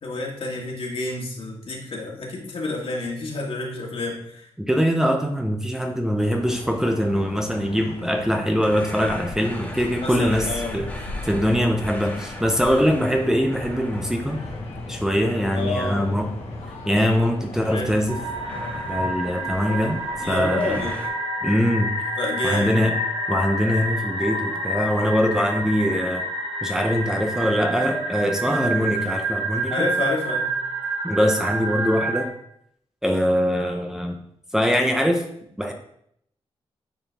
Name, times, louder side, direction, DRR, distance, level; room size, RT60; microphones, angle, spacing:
voice 1, 0.0-4.5 10.0-10.8 15.5-16.2 17.7-18.0 20.2-21.0 22.2-22.8 29.7-30.5, left 2 dB, 65° left, -1 dB, 2.0 m, -29 dB
voice 2, 4.7-10.5 10.7-14.4 14.9-16.3 16.9-18.2 18.7-20.0 20.3-20.8 21.4-21.9 22.4-22.9 23.3-26.2 26.6-29.7 31.0-32.3 33.0-34.2 34.5-35.2 35.6-35.7, equal, 5° right, 3 dB, 0.8 m, -22 dB
sound 1, 6.2-21.0, left 3 dB, 85° left, 1.2 m, -38 dB
sound 2, 8.6-17.1 17.5-19.2 20.6-21.1, left 1 dB, 15° left, 1.7 m, -37 dB
sound 3, 18.1-32.3, right 1 dB, 65° right, 1.9 m, -28 dB
9.2 x 4.4 x 3.5 m, 0.72 s
cardioid pair, 90°, 10 cm